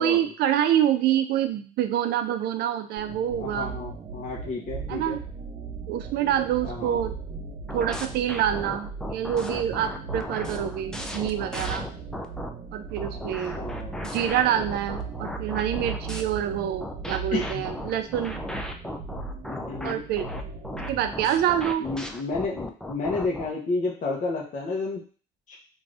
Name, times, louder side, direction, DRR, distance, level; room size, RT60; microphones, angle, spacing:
voice 1, 0.0-3.7 4.9-5.2 5.9-7.2 7.7-11.9 12.7-13.6 14.0-18.4 19.8-20.3 20.9-21.9, right 10 dB, 75° right, 9 dB, 0.4 m, -26 dB
sound 1, 3.0-21.4, right 5 dB, 50° right, 0.8 m, -38 dB
voice 2, 3.4-5.2 6.6-7.0 13.1-13.2 13.5-14.0 17.3-17.6 19.5-20.0 21.8-25.0 25.5-25.6, left 3 dB, 50° left, -3 dB, 0.8 m, -31 dB
sound 2, 7.7-12.5 13.0-16.2 16.8-23.5, left 1 dB, 5° left, 0.3 m, -36 dB
2.6 x 2.5 x 3.3 m, 0.38 s
cardioid pair, 110°, 17 cm